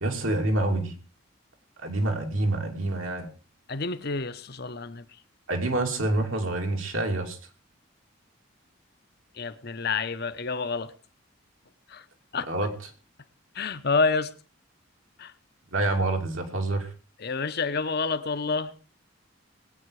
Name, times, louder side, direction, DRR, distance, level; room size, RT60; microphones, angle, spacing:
voice 1, 0.0-0.9 1.8-3.3 5.5-7.4 12.4-12.9 15.7-16.9, right 2 dB, 80° right, 2.9 m, -27 dB
voice 2, 3.7-5.0 9.4-10.9 11.9-12.0 12.3-12.5 13.6-14.3 15.2-15.3 17.2-18.7, left 4 dB, 50° left, 1.0 m, -28 dB
20.5 x 8.8 x 4.8 m
head